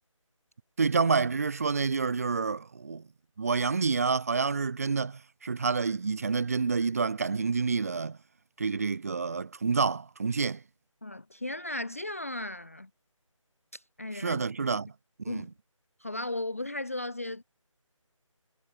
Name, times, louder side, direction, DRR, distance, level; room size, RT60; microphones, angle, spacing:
voice 1, 0.8-3.0 3.4-8.2 8.6-10.6 14.1-14.9 15.2-15.4, right 5 dB, 25° right, 1.4 m, -28 dB
voice 2, 11.0-12.9 13.7-14.4 15.3-15.5 16.0-17.4, left 2 dB, 25° left, 0.5 m, -36 dB
figure-of-eight pair, 170°, 17 cm